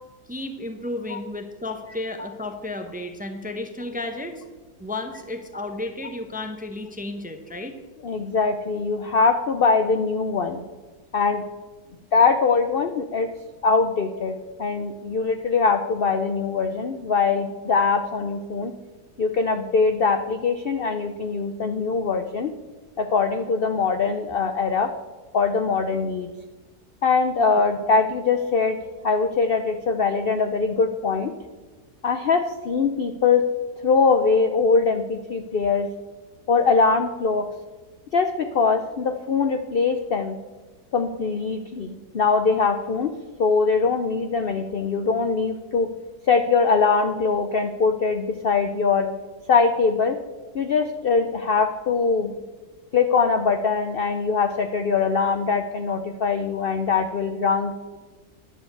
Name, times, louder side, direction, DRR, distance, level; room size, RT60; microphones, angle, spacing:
voice 1, 0.3-4.4 4.8-7.8, left 2 dB, 10° right, 6 dB, 0.6 m, -33 dB
voice 2, 8.0-10.6 11.1-11.4 12.1-13.3 13.6-18.7 19.2-22.5 23.0-24.9 25.3-26.3 27.0-28.8 29.0-31.3 32.0-33.4 33.8-35.9 36.5-37.5 38.1-40.4 40.9-45.9 46.3-49.1 49.5-50.2 50.5-52.3 52.9-57.7, left 4 dB, 60° left, 8 dB, 0.6 m, -22 dB
10.5 x 7.1 x 7.9 m, 1.3 s
omnidirectional pair, 1.7 m